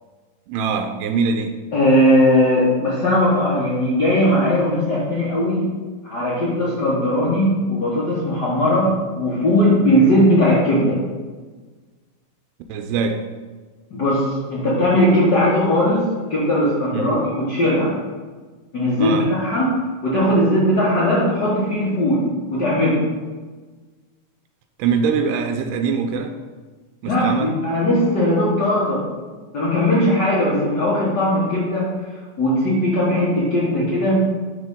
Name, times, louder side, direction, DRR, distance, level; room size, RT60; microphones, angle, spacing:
voice 1, 0.5-1.6 12.7-13.3 16.9-17.2 19.0-19.3 24.8-26.4 27.0-27.6, right 5 dB, 90° right, 6 dB, 2.1 m, -23 dB
voice 2, 1.7-5.7 6.0-11.0 13.9-16.0 16.3-18.0 18.7-19.8 20.0-23.0 27.0-29.0 29.5-31.9 32.4-34.2, equal, 80° left, -7 dB, 0.9 m, -18 dB
9.4 x 3.7 x 3.6 m, 1.4 s
omnidirectional pair, 3.7 m